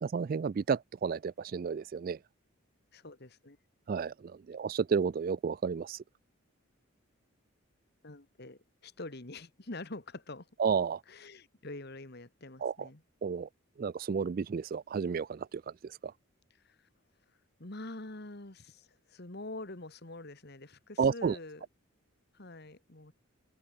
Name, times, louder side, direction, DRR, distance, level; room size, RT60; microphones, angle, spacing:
voice 1, 0.0-2.2 3.9-6.0 10.6-11.0 12.6-12.9 13.2-13.5 13.8-16.1 21.0-21.4, right 6 dB, 45° right, 0.3 m, -32 dB
voice 2, 2.9-3.6 8.0-10.5 11.1-13.0 16.6-16.9 17.6-21.7 22.3-23.1, left 2 dB, 50° left, 1.8 m, -45 dB
open air
head